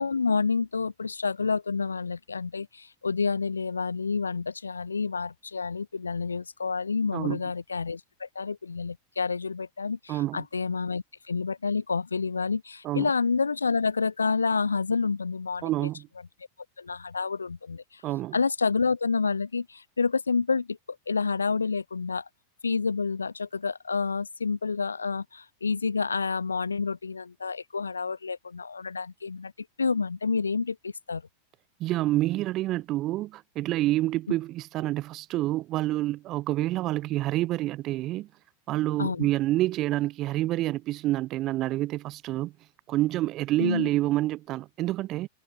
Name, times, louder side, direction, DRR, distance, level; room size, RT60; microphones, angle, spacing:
voice 1, 0.0-15.9 16.8-18.0 18.3-20.8 21.1-22.3 22.6-29.5 29.8-31.2 39.0-39.3 43.6-43.9, left 4 dB, 75° left, 1.8 m, -29 dB
voice 2, 10.1-10.4 12.8-13.1 15.6-16.1 18.0-18.4 31.8-38.3 38.7-42.5 42.9-45.3, right 16 dB, 35° right, 6.5 m, -28 dB
figure-of-eight pair, 90°, 0 cm